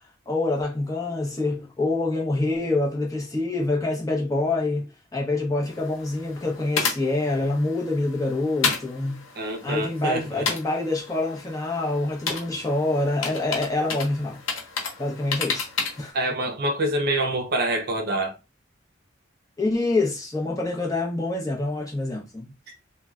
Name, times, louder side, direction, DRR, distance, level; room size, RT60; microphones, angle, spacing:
voice 1, 0.3-9.3 9.6-14.4 15.0-15.7 16.0-16.2 19.6-22.5, left 2 dB, 15° left, 0.7 m, -26 dB
sound 1, 5.7-16.1, left 5 dB, 80° left, 0.7 m, -32 dB
voice 2, 9.4-10.4 16.1-18.4, right 1 dB, 50° right, 0.5 m, -26 dB
3.2 x 2.2 x 2.3 m
head